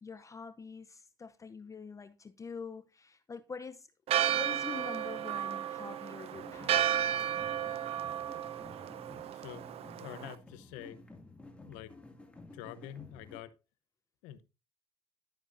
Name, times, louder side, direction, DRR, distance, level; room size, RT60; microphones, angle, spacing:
voice 1, 0.0-3.9 4.3-7.1, left 5 dB, 25° left, 0.7 m, -45 dB
Church bell, 4.1-10.3, right 10 dB, 55° right, 0.7 m, -33 dB
sound 1, 6.3-13.4, left 2 dB, 10° left, 2.3 m, -53 dB
voice 2, 9.3-9.7 10.0-11.0 11.7-11.9 12.5-13.5 14.2-14.4, left 12 dB, 80° left, 0.9 m, -46 dB
12.0 x 7.9 x 2.6 m
supercardioid pair, 80°, 13 cm